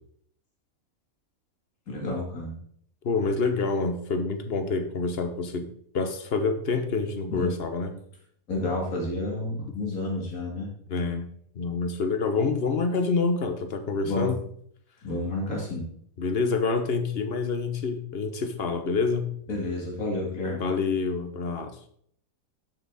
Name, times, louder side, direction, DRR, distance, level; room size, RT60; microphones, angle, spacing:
voice 1, 1.9-2.6 7.3-7.5 8.5-10.7 14.0-14.3 15.0-15.9 19.5-20.6, left 2 dB, 75° left, -2 dB, 2.9 m, -30 dB
voice 2, 3.0-7.9 10.9-11.3 11.6-14.4 16.2-19.3 20.6-21.8, left 4 dB, 50° left, 8 dB, 1.1 m, -27 dB
12.5 x 5.8 x 4.1 m, 0.66 s
omnidirectional pair, 1.5 m